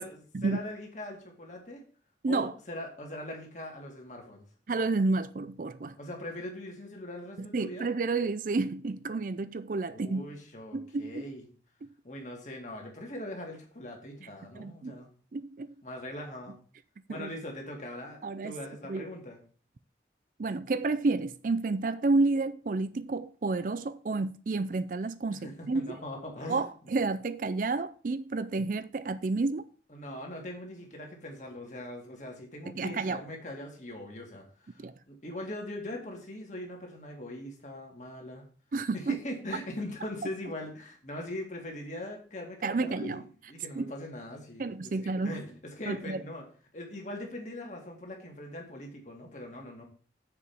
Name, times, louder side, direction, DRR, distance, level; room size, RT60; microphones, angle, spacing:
voice 1, 0.0-1.8 2.3-4.4 6.0-7.9 9.9-11.5 12.0-15.1 15.8-16.6 17.1-19.4 25.3-26.9 29.9-38.4 38.9-46.5 46.7-49.8, left 1 dB, 40° left, 2.3 m, -41 dB
voice 2, 4.7-6.0 7.4-10.2 10.7-11.2 14.5-15.0 15.3-15.7 17.1-17.3 18.2-18.6 18.9-19.1 20.4-26.0 26.5-29.6 32.8-33.2 34.8-34.9 38.7-39.1 42.6-43.2 43.8-43.9 44.6-45.4 45.9-46.2, right 3 dB, 45° right, 0.4 m, -30 dB
6.9 x 5.0 x 7.1 m
head